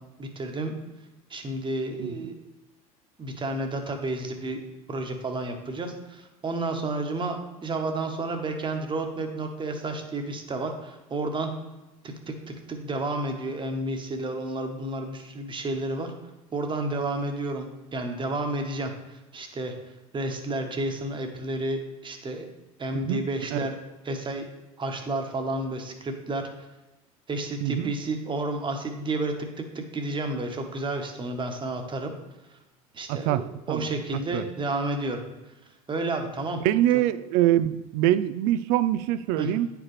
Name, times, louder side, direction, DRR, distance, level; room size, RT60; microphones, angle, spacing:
voice 1, 0.2-0.7 1.3-2.3 3.2-4.6 4.9-7.4 7.6-11.5 12.3-12.4 12.7-16.1 16.5-18.9 19.3-19.7 20.1-22.5 22.8-23.8 24.0-24.4 24.8-26.5 27.3-29.3 29.7-32.1 32.9-35.2 35.9-36.6 36.9-37.0 39.4-39.5, right 2 dB, 25° right, 4 dB, 1.3 m, -31 dB
voice 2, 2.0-2.3 23.1-23.2 23.5-23.6 27.6-27.9 33.1-33.4 33.7-33.9 34.3-34.4 36.6-39.7, right 13 dB, 55° right, 15 dB, 0.4 m, -24 dB
9.4 x 4.9 x 3.3 m, 1.0 s
hypercardioid pair, 75°, 19 cm